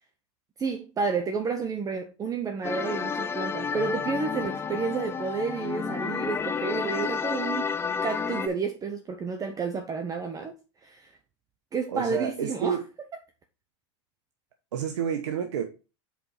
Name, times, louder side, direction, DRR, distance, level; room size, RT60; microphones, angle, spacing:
voice 1, 0.6-7.7 8.0-10.5 10.8-11.2 11.7-12.8, right 5 dB, 25° right, 0.8 m, -30 dB
sound 1, 2.6-8.5, left 6 dB, 15° left, 0.5 m, -31 dB
voice 2, 11.9-12.8 14.7-15.6, right 8 dB, 90° right, 0.9 m, -29 dB
5.4 x 4.5 x 4.7 m
hypercardioid pair, 110°, 15 cm